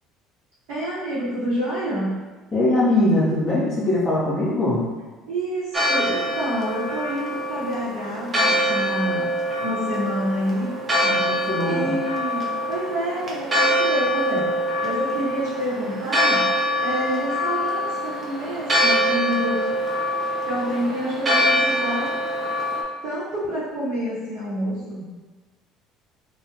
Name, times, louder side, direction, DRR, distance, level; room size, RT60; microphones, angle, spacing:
voice 1, 0.7-2.2 5.3-9.3 9.6-10.7 11.7-14.5 14.8-16.5 16.8-19.6 20.4-22.1 23.0-25.1, equal, 70° right, -12 dB, 0.8 m, -28 dB
voice 2, 2.5-4.9 11.0-11.9, left 1 dB, 30° left, -8 dB, 0.6 m, -21 dB
Church bell, 5.7-22.8, equal, 35° right, 0.5 m, -24 dB
2.2 x 2.1 x 2.8 m, 1.3 s
hypercardioid pair, 65°, 0 cm